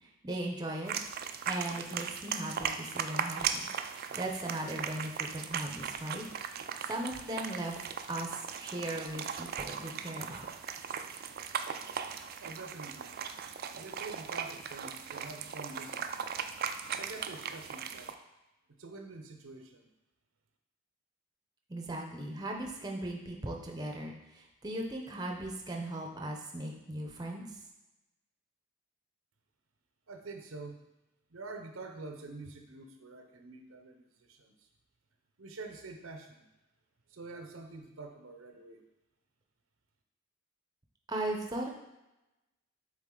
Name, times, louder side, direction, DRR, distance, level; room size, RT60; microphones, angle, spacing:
voice 1, 0.0-0.9 1.5-3.7 4.1-6.2 6.9-10.5 21.7-27.4 41.1-41.7, right 1 dB, 20° right, 0 dB, 0.7 m, -38 dB
sound 1, 0.9-18.1, right 7 dB, 50° right, 0.4 m, -38 dB
voice 2, 12.4-13.2 13.7-16.2 16.9-18.1 18.8-19.9 30.1-30.8 31.3-34.5 35.4-36.4 37.1-38.8, right 3 dB, 80° right, 5 dB, 0.8 m, -46 dB
7.6 x 3.9 x 3.8 m, 0.96 s
head